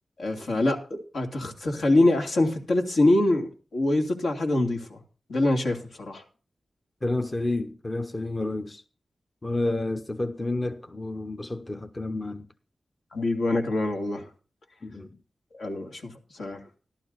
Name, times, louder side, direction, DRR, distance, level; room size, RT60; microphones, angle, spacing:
voice 1, 0.2-5.0 5.3-6.2 13.1-14.3 15.5-16.6, left 2 dB, 80° left, 2.7 m, -25 dB
voice 2, 7.0-8.8 9.4-12.5 14.8-15.2, left 2 dB, 30° left, 0.8 m, -30 dB
14.5 x 12.0 x 4.0 m
wide cardioid pair, 95°, 0 cm